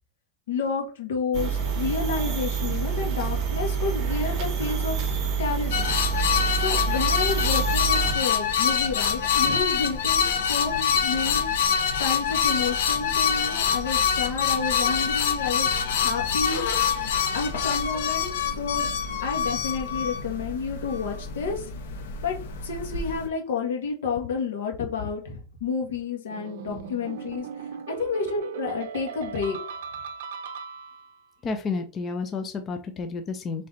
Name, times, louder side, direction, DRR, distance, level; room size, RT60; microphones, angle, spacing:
voice 1, 0.5-6.0 6.6-16.6 17.3-18.9 19.2-21.7 22.2-22.4 22.6-27.7 28.0-29.6, left 5 dB, 85° left, 1 dB, 1.6 m, -30 dB
sound 1, 1.3-8.1, right 6 dB, 30° right, 1.0 m, -27 dB
sound 2, 5.7-23.3, left 7 dB, 70° left, 1.0 m, -25 dB
sound 3, 26.3-31.2, right 7 dB, 60° right, 0.5 m, -37 dB
voice 2, 31.4-33.7, left 4 dB, 15° left, 7 dB, 0.4 m, -31 dB
4.1 x 3.2 x 3.8 m, 0.36 s
supercardioid pair, 180°, 0 cm